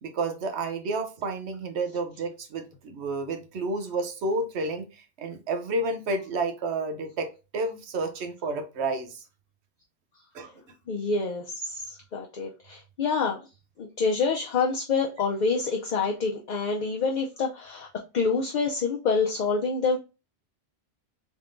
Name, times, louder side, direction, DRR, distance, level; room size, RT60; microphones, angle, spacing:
voice 1, 0.0-9.2 10.3-10.5, right 3 dB, 85° right, 1.0 m, -30 dB
voice 2, 10.9-13.4 13.8-17.9 18.1-20.0, left 4 dB, 50° left, 0.6 m, -27 dB
3.6 x 3.4 x 2.5 m
omnidirectional pair, 1.1 m